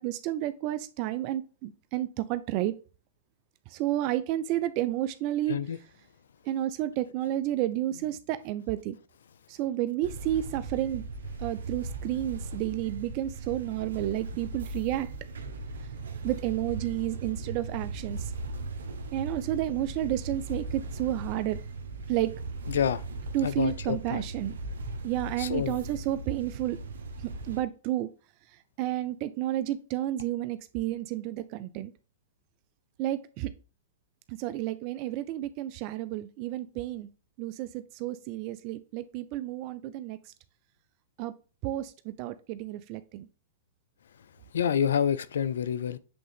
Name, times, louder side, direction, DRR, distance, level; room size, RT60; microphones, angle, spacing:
voice 1, 0.0-2.7 3.7-5.6 6.4-9.0 9.5-11.0 11.4-15.1 16.2-18.3 19.1-21.6 22.1-22.3 23.3-24.6 25.0-26.8 27.2-28.1 28.5-31.9 33.0-33.5 34.3-37.1 37.4-40.3 41.2-41.3 41.6-43.3, right 13 dB, 45° right, 0.4 m, -31 dB
sound 1, 10.0-27.6, right 3 dB, 75° right, 1.0 m, -38 dB
voice 2, 22.7-23.0 23.4-24.2 25.4-25.8 44.5-46.0, left 8 dB, 75° left, 0.5 m, -28 dB
7.8 x 3.7 x 3.5 m
hypercardioid pair, 125°, 0 cm